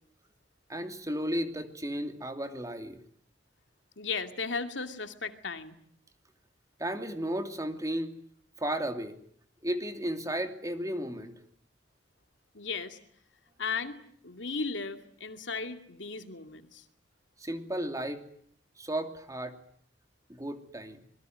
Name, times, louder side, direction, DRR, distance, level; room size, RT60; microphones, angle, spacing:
voice 1, 0.7-3.0 6.8-8.1 8.6-9.2 9.6-11.4 17.4-18.2 18.8-19.6 20.3-21.0, right 1 dB, 20° right, 6 dB, 2.8 m, -34 dB
voice 2, 4.0-5.8 12.5-13.0 13.6-16.8, left 4 dB, 75° left, 7 dB, 2.5 m, -36 dB
26.5 x 22.0 x 9.4 m, 0.63 s
head